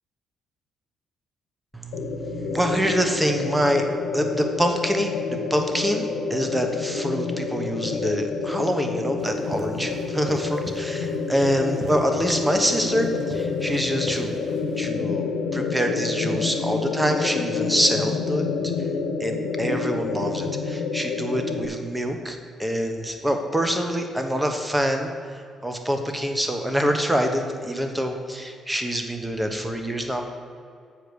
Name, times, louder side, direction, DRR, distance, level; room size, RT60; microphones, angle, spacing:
voice 1, 1.7-14.4 14.8-18.4 19.2-25.1 25.6-30.2, equal, 10° right, 5 dB, 1.0 m, -25 dB
sound 1, 1.9-21.7, left 4 dB, 85° left, 0.9 m, -28 dB
sound 2, 9.2-14.9, right 1 dB, 40° right, 1.1 m, -41 dB
7.6 x 5.0 x 6.9 m, 2.3 s
cardioid pair, 90°, 0 cm